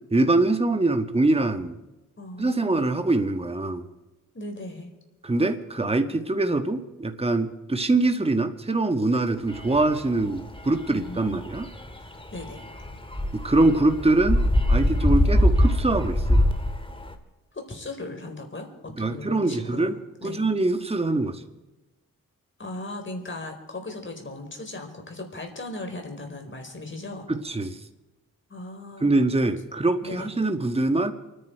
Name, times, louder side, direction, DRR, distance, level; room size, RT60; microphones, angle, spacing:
voice 1, 0.1-1.8 2.4-3.8 5.2-11.7 13.3-14.4 14.7-16.4 19.0-19.9 20.2-21.4 27.3-27.8 29.0-31.1, right 2 dB, 15° right, 7 dB, 1.5 m, -23 dB
voice 2, 2.2-2.8 4.3-4.9 10.9-11.4 12.0-12.7 17.5-20.5 22.6-27.2 28.5-29.1 30.0-30.3, left 2 dB, 35° left, 4 dB, 4.5 m, -38 dB
sound 1, 9.5-17.1, left 1 dB, 15° left, 2.4 m, -24 dB
28.5 x 10.0 x 4.6 m, 1.1 s
supercardioid pair, 50°, 34 cm